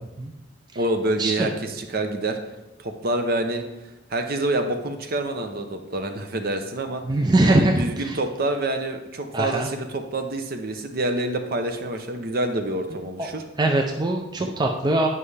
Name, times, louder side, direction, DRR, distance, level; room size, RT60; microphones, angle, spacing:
voice 1, 0.8-2.4 2.8-3.6 4.1-7.0 7.4-13.4 14.4-14.5, right 2 dB, 50° right, 6 dB, 0.7 m, -27 dB
voice 2, 7.1-8.2 9.3-9.7 13.6-15.1, right 2 dB, 20° right, 3 dB, 0.4 m, -21 dB
9.2 x 5.4 x 3.3 m, 0.98 s
head